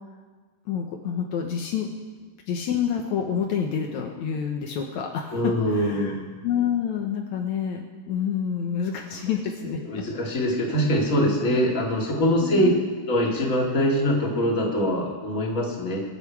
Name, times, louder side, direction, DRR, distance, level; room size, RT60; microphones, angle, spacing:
voice 1, 0.7-1.9 2.5-6.1 6.4-10.0 12.4-12.8, left 8 dB, 90° left, 2 dB, 1.6 m, -28 dB
voice 2, 5.3-6.2 9.6-12.7 13.0-16.0, equal, 25° left, -3 dB, 2.0 m, -23 dB
24.0 x 8.2 x 4.8 m, 1.4 s
omnidirectional pair, 4.8 m